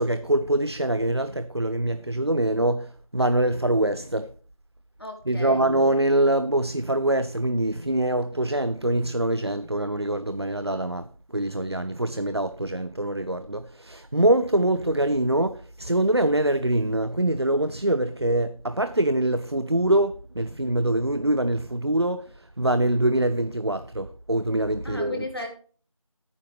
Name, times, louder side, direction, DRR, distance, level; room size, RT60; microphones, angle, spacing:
voice 1, 0.0-4.3 5.3-25.3, right 1 dB, 50° right, 0.5 m, -24 dB
voice 2, 5.0-5.6 24.8-25.5, left 2 dB, 45° left, 3.3 m, -35 dB
12.5 x 9.4 x 3.1 m
figure-of-eight pair, 175°, 18 cm